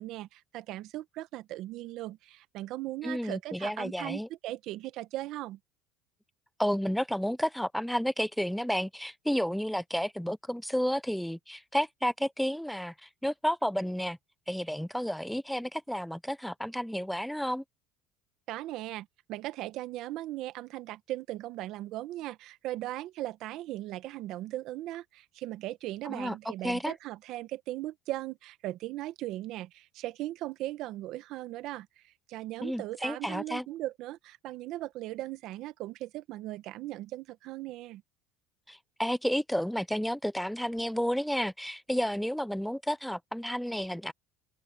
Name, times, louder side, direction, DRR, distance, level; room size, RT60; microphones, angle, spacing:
voice 1, 0.0-5.6 18.5-38.0, right 15 dB, 60° right, 1.3 m, -38 dB
voice 2, 3.0-4.3 6.6-14.2 14.5-17.6 26.0-26.4 26.6-26.9 32.6-33.7 38.7-44.1, equal, ahead, 0.3 m, -31 dB
open air
supercardioid pair, 110°, 0 cm